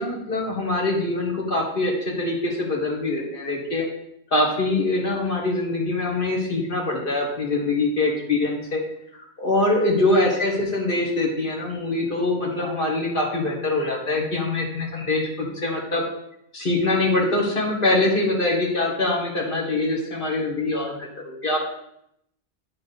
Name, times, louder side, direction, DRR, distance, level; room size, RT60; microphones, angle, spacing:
voice 1, 0.0-3.9 4.3-8.8 9.1-16.0 16.5-21.7, left 2 dB, 55° left, -2 dB, 1.8 m, -24 dB
8.5 x 4.6 x 4.0 m, 0.77 s
omnidirectional pair, 1.1 m